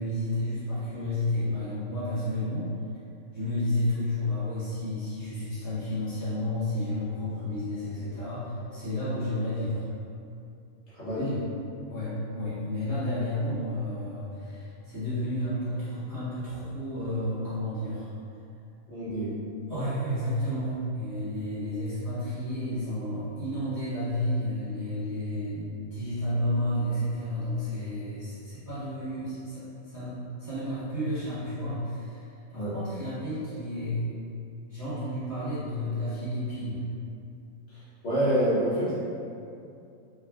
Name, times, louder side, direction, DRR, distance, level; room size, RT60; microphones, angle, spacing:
voice 1, 0.0-2.7 3.3-9.9 11.1-11.4 11.9-18.1 19.7-34.1 34.7-36.8, left 1 dB, 15° right, -14 dB, 0.9 m, -31 dB
voice 2, 10.9-11.5 18.9-19.4 32.5-32.8 37.7-39.0, right 1 dB, 60° left, -11 dB, 1.1 m, -28 dB
3.4 x 2.2 x 2.2 m, 2.6 s
omnidirectional pair, 1.4 m